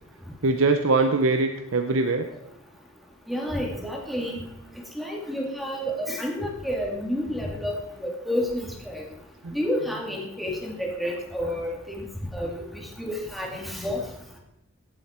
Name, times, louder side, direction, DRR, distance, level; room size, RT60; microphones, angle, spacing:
voice 1, 0.4-2.3 9.4-9.5 9.8-10.2 10.4-10.5 13.8-14.0, right 3 dB, 70° right, 7 dB, 0.7 m, -23 dB
voice 2, 3.3-4.4 5.0-9.0 9.5-12.0 12.3-14.0, equal, ahead, -1 dB, 2.2 m, -30 dB
16.5 x 7.8 x 4.3 m, 0.84 s
head